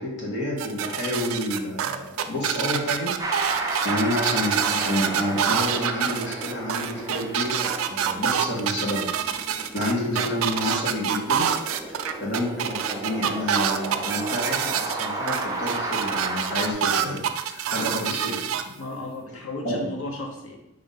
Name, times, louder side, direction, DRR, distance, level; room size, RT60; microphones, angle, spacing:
voice 1, 0.0-3.1 3.8-9.2 9.7-11.5 11.9-18.4 18.7-18.8 19.6-19.9, left 1 dB, 60° left, -4 dB, 1.0 m, -29 dB
sound 1, 0.6-18.6, right 9 dB, 85° right, 0.3 m, -26 dB
sound 2, 3.2-16.7, right 2 dB, 20° right, 0.5 m, -34 dB
voice 2, 17.8-18.2 18.8-20.6, left 2 dB, 85° left, 2 dB, 0.8 m, -35 dB
5.0 x 2.6 x 4.0 m, 0.86 s
head